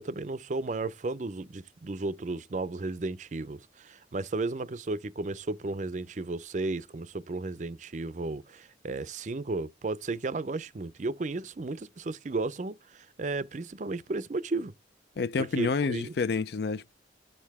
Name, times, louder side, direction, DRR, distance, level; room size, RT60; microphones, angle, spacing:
voice 1, 0.0-14.7 15.4-16.1, right 3 dB, 40° right, 0.5 m, -34 dB
voice 2, 15.2-16.9, left 4 dB, 60° left, 0.4 m, -29 dB
9.7 x 6.6 x 3.5 m
head